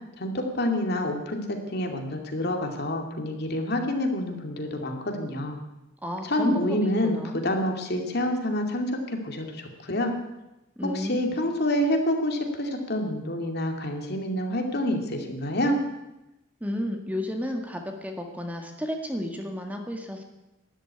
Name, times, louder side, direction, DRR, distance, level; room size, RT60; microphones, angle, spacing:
voice 1, 0.2-5.6 6.2-7.2 7.4-10.1 10.9-15.8, left 1 dB, 55° left, 3 dB, 2.5 m, -27 dB
voice 2, 6.0-7.4 10.8-11.4 16.6-20.2, equal, 10° right, 3 dB, 1.8 m, -32 dB
12.5 x 12.0 x 9.7 m, 0.95 s
head